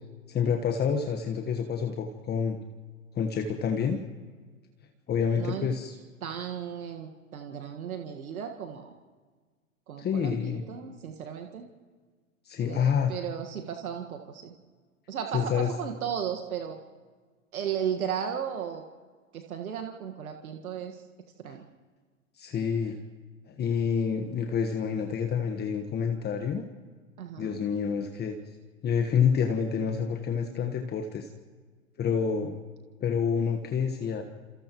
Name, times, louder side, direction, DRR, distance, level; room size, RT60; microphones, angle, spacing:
voice 1, 0.3-2.6 3.1-4.0 5.1-6.0 10.0-10.6 12.4-13.1 15.3-15.7 21.5-21.6 22.3-23.0 23.5-26.6 27.4-28.3 28.8-31.3 32.0-32.5 33.0-34.2, left 7 dB, 25° left, 4 dB, 1.4 m, -28 dB
voice 2, 5.3-5.7 6.2-8.9 9.9-11.7 12.6-14.6 15.1-16.8 17.5-18.8 19.3-21.0 21.4-21.6 27.2-27.6, right 8 dB, 80° right, 4 dB, 1.8 m, -35 dB
30.0 x 28.0 x 3.1 m, 1.5 s
hypercardioid pair, 115°, 42 cm